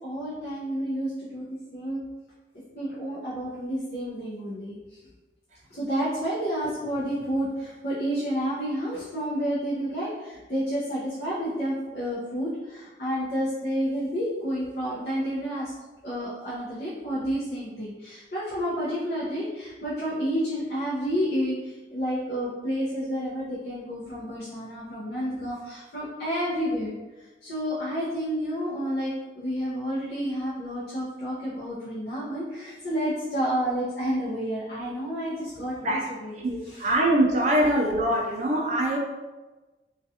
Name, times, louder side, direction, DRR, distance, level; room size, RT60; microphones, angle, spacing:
voice 1, 0.0-2.0 2.8-5.0 5.7-15.7 16.0-36.9, equal, 60° left, -9 dB, 0.6 m, -30 dB
voice 2, 36.4-39.0, right 1 dB, 40° right, -1 dB, 0.3 m, -23 dB
2.3 x 2.2 x 2.7 m, 1.2 s
head